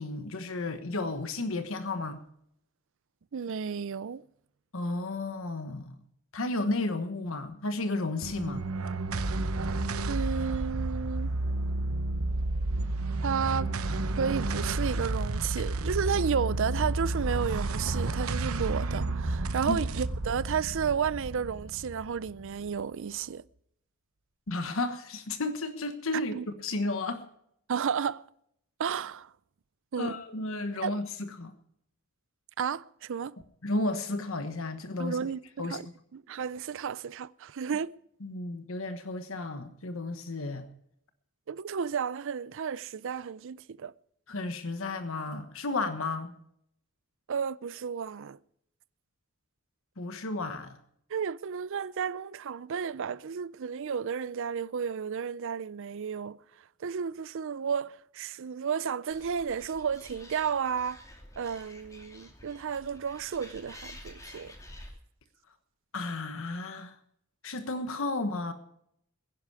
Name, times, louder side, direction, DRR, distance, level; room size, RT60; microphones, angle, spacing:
voice 1, 0.0-2.2 4.7-6.0 6.3-8.6 19.7-19.8 24.5-27.2 30.0-31.5 33.6-35.2 35.6-35.8 38.2-40.7 44.3-46.3 50.0-50.8 65.9-66.9 67.4-68.5, left 2 dB, 70° left, 1.3 m, -33 dB
voice 2, 3.3-4.2 10.1-11.3 13.2-13.7 14.2-23.4 26.3-26.5 27.7-28.2 28.8-29.3 29.9-30.1 30.8-30.9 32.6-33.3 35.0-35.9 36.1-37.9 41.5-43.9 47.3-48.4 51.1-56.4 56.8-61.0 61.4-64.5, right 6 dB, 65° right, 0.5 m, -32 dB
sound 1, 8.2-22.8, right 2 dB, 85° right, 0.9 m, -31 dB
Animal, 59.1-64.9, left 1 dB, 15° left, 2.6 m, -50 dB
21.0 x 11.0 x 4.8 m
head